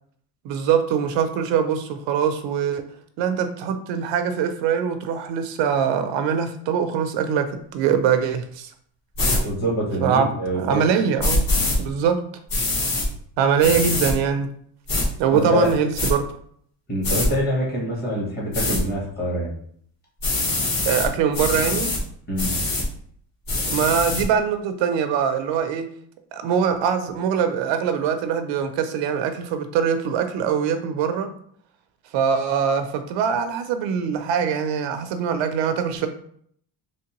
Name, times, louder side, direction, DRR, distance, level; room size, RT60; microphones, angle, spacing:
voice 1, 0.4-2.8 3.2-7.5 7.7-8.7 10.0-11.5 11.8-12.2 13.4-14.5 15.2-16.2 20.8-21.9 23.7-25.9 26.3-31.3 32.1-36.1, right 7 dB, 70° right, 8 dB, 0.5 m, -22 dB
sound 1, 9.2-9.4 11.2-11.8 12.5-13.1 13.6-14.1 14.9-15.1 15.6-16.1 17.0-17.3 18.5-18.8 20.2-21.1 21.3-22.0 22.4-22.9 23.5-24.2, left 2 dB, 45° left, 1.4 m, -23 dB
voice 2, 9.4-10.8 15.3-15.7 16.9-19.5 22.3-22.6, equal, 20° left, -4 dB, 1.1 m, -25 dB
3.5 x 3.0 x 2.9 m, 0.63 s
cardioid pair, 180°, 47 cm